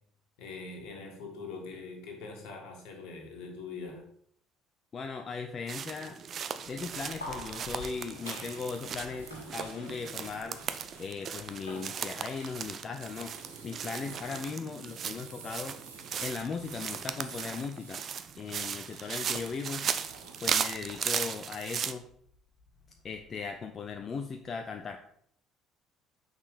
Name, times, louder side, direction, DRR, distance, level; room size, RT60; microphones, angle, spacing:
voice 1, 0.4-4.0, left 4 dB, 65° left, 1.8 m, -43 dB
voice 2, 4.9-6.2 6.7-10.6 11.0-13.3 13.6-15.8 16.2-18.0 18.4-19.9 20.4-22.1 23.0-25.0, left 5 dB, 35° left, 0.6 m, -38 dB
sound 1, 5.7-21.9, right 7 dB, 45° right, 0.5 m, -37 dB
sound 2, 6.6-14.2, left 1 dB, 85° left, 2.0 m, -48 dB
sound 3, 7.6-18.0 18.8-20.6 21.0-21.2, right 5 dB, 80° right, 1.0 m, -53 dB
6.5 x 5.4 x 5.0 m
figure-of-eight pair, 55°, 0 cm